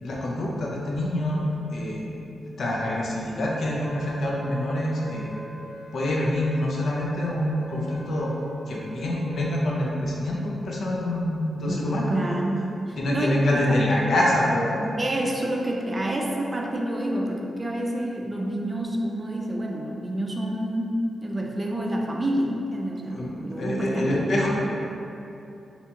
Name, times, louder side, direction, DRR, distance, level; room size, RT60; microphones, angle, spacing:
voice 1, 0.0-2.1 2.4-5.4 5.9-8.3 8.7-12.1 13.0-14.9 23.1-24.5, left 1 dB, 70° left, -3 dB, 0.5 m, -26 dB
Wind instrument woodwind instrument, 3.5-9.7, right 1 dB, 85° right, 0.5 m, -44 dB
voice 2, 11.7-13.8 15.0-24.5, right 1 dB, 25° right, -1 dB, 0.3 m, -28 dB
2.7 x 2.2 x 2.8 m, 2.7 s
cardioid pair, 85°, 0 cm